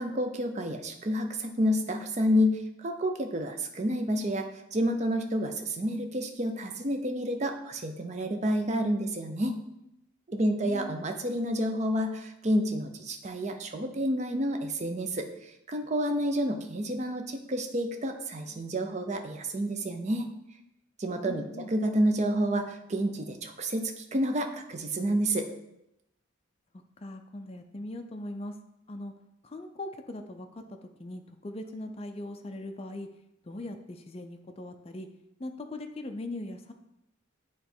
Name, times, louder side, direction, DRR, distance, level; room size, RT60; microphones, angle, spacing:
voice 1, 0.0-9.6 10.3-20.3 21.0-21.4 21.7-25.5, equal, 35° right, 5 dB, 0.5 m, -29 dB
voice 2, 10.4-11.0 21.3-21.7 26.7-28.6 28.9-29.1 29.4-33.1 33.4-35.1 35.4-36.7, left 1 dB, 30° left, 5 dB, 0.4 m, -40 dB
9.0 x 3.1 x 4.4 m, 0.85 s
head